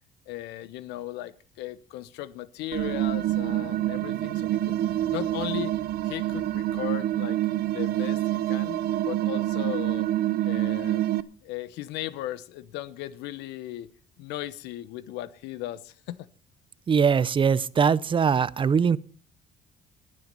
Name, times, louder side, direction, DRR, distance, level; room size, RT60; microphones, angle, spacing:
voice 1, 0.3-4.8 5.1-5.7 6.0-7.4 7.7-8.8 9.0-10.1 10.4-11.0 11.4-13.9 14.2-16.2, left 14 dB, 90° left, 0.9 m, -37 dB
sound 1, 2.7-11.2, right 13 dB, 65° right, 0.7 m, -27 dB
voice 2, 16.9-19.0, right 6 dB, 30° right, 0.5 m, -21 dB
20.0 x 7.5 x 5.4 m
cardioid pair, 110°, 17 cm